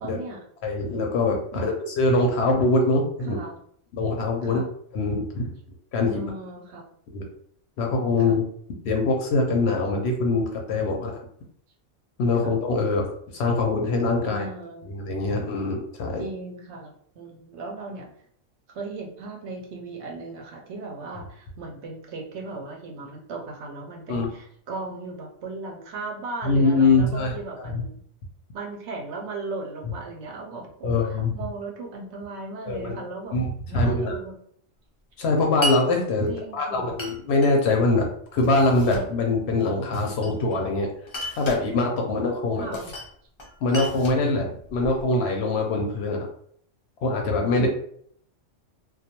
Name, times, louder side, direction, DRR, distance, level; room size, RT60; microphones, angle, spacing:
voice 1, 0.0-0.4 1.5-1.7 3.3-3.6 4.4-4.7 6.1-6.8 8.3-8.4 12.3-12.6 14.2-14.9 16.2-18.1 18.7-28.0 28.5-33.4 33.7-34.4 36.3-37.0 42.6-42.9 47.6-47.7, right 3 dB, 70° right, 0 dB, 0.8 m, -37 dB
voice 2, 0.6-3.4 3.9-4.6 4.9-5.5 5.9-6.2 7.1-7.2 7.8-8.4 8.8-11.3 12.2-14.4 14.9-16.2 24.1-24.3 26.4-27.3 27.6-27.8 30.8-31.3 32.7-33.0 33.3-34.1 35.2-40.9 41.3-42.7 43.6-46.3 47.0-47.7, left 3 dB, 65° left, 2 dB, 0.8 m, -23 dB
Glass, 35.6-35.8 37.0-37.5 38.4-39.1 39.9-40.6 41.1-41.6 42.7-43.1 43.4-45.0, equal, 50° left, 0.3 m, -34 dB
2.2 x 2.2 x 2.8 m, 0.63 s
omnidirectional pair, 1.3 m